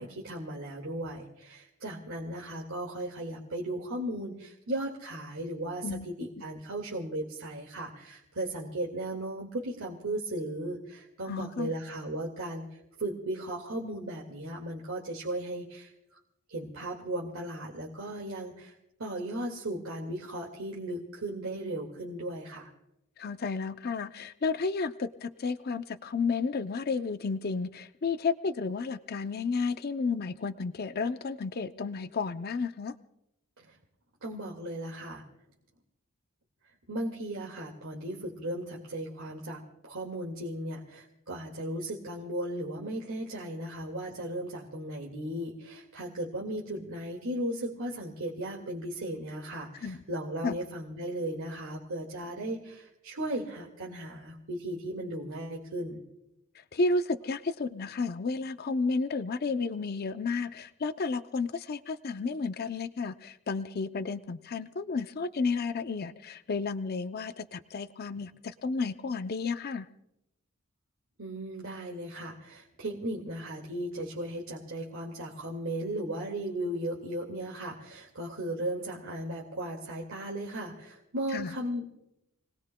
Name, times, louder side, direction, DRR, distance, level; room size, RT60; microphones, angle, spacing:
voice 1, 0.0-12.7 13.0-15.9 16.5-18.7 19.0-22.7 33.6-33.7 34.2-35.2 36.9-56.0 71.2-82.0, right 1 dB, 90° right, -2 dB, 2.0 m, -36 dB
voice 2, 11.3-11.7 23.2-32.9 49.8-50.0 50.4-50.6 56.5-69.9 81.3-81.5, left 4 dB, 50° left, 10 dB, 0.5 m, -32 dB
29.5 x 19.5 x 2.2 m, 0.86 s
head